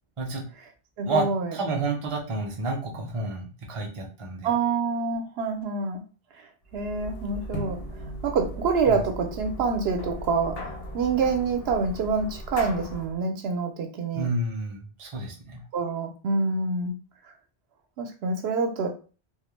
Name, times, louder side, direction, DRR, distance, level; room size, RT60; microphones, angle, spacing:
voice 1, 0.2-0.5 1.0-4.5 8.9-9.0 14.1-15.6, right 2 dB, 40° right, 0 dB, 0.6 m, -30 dB
voice 2, 1.0-1.5 4.4-6.0 6.7-14.3 15.7-16.9 18.0-18.9, right 4 dB, 80° right, 5 dB, 0.8 m, -27 dB
sound 1, 6.7-13.2, right 1 dB, 70° left, 0.9 m, -38 dB
2.3 x 2.0 x 3.1 m, 0.36 s
omnidirectional pair, 1.0 m